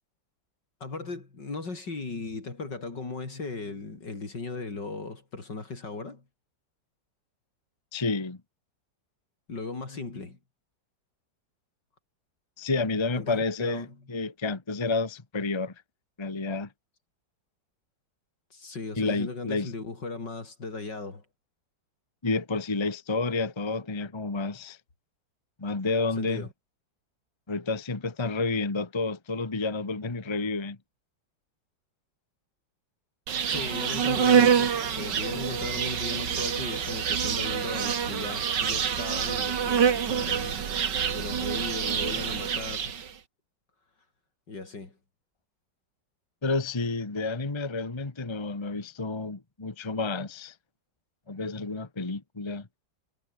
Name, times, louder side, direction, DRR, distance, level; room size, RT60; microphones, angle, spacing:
voice 1, 0.8-6.2 9.5-10.4 13.1-14.0 18.5-21.2 26.2-26.5 33.5-40.6 41.1-42.9 44.5-45.0, left 3 dB, 65° left, 5.0 m, -37 dB
voice 2, 7.9-8.4 12.6-15.7 16.2-16.7 19.0-19.7 22.2-24.8 25.6-26.5 27.5-30.8 46.4-50.5 51.3-52.7, left 3 dB, 15° left, 1.2 m, -30 dB
Insect, 33.3-43.1, right 7 dB, 70° right, 2.3 m, -26 dB
omnidirectional pair, 2.0 m